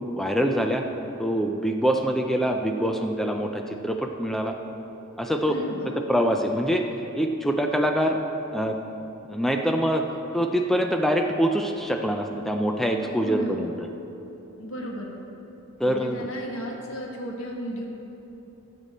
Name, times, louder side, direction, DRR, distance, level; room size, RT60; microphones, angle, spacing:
voice 1, 0.2-0.8 1.2-4.6 5.2-5.6 6.1-6.9 7.1-8.2 8.5-8.8 9.2-10.0 10.3-13.7 15.8-16.3, equal, ahead, 3 dB, 0.4 m, -24 dB
voice 2, 5.5-6.0 13.2-13.6 14.6-15.1 15.8-17.8, left 1 dB, 75° left, -1 dB, 1.5 m, -34 dB
15.0 x 7.4 x 4.2 m, 3.0 s
head